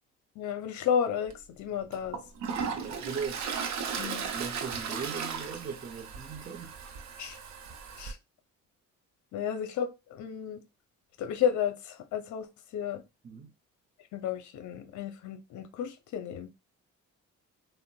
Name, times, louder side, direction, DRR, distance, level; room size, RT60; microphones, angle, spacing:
voice 1, 0.4-2.2 4.0-4.3 7.2-7.4 8.0-8.2 9.3-10.6 11.2-12.5 12.7-13.0 14.1-16.5, left 8 dB, 70° left, 0.6 m, -32 dB
Toilet flush, 1.3-1.4 1.9-8.1, right 6 dB, 65° right, 0.7 m, -36 dB
voice 2, 2.7-3.4 4.3-7.0 13.2-13.5, right 6 dB, 30° right, 0.6 m, -39 dB
3.7 x 2.1 x 2.2 m
cardioid pair, 90°, 30 cm